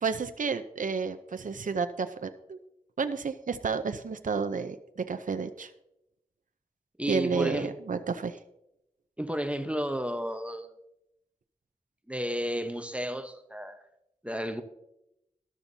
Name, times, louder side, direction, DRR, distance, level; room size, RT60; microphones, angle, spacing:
voice 1, 0.0-2.6 3.0-5.7 7.1-8.4, right 5 dB, 70° right, 9 dB, 0.6 m, -31 dB
voice 2, 7.0-7.7 9.2-10.7 12.1-13.8 14.2-14.6, equal, 10° right, 8 dB, 0.9 m, -32 dB
13.0 x 12.0 x 2.7 m, 0.85 s
wide cardioid pair, 60°, 14 cm